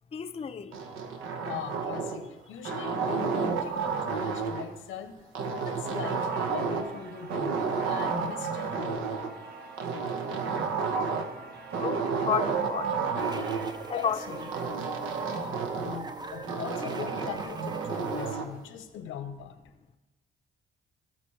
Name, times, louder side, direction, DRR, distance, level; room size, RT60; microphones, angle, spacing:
voice 1, 0.1-0.7 11.8-13.0 13.9-14.2, left 7 dB, 30° left, 0.6 m, -31 dB
sound 1, 0.7-2.3 2.6-4.7 5.4-7.0 7.3-9.3 9.8-11.4 11.7-13.7 14.5-16.1 16.5-18.5, right 5 dB, 90° right, 1.1 m, -31 dB
voice 2, 1.4-5.2 5.4-9.1 13.9-14.5 15.3-19.6, left 8 dB, 90° left, 1.0 m, -40 dB
sound 2, 6.0-14.6, right 2 dB, 55° right, 1.6 m, -47 dB
sound 3, 13.2-18.3, right 4 dB, 20° right, 0.7 m, -41 dB
18.0 x 6.0 x 3.3 m
cardioid pair, 90°, 20 cm